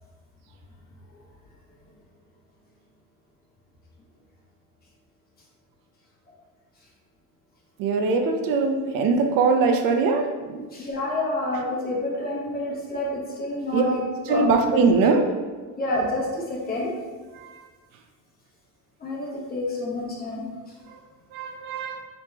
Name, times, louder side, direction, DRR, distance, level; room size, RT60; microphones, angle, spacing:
voice 1, 7.8-10.7 13.7-13.8 14.3-15.2 17.4-17.5 21.3-22.1, right 4 dB, 65° right, 5 dB, 0.5 m, -22 dB
voice 2, 10.7-14.4 14.8-14.9 15.8-16.9 19.0-20.4, left 1 dB, 25° left, -3 dB, 1.0 m, -28 dB
4.9 x 3.1 x 3.4 m, 1.4 s
cardioid pair, 170°, 36 cm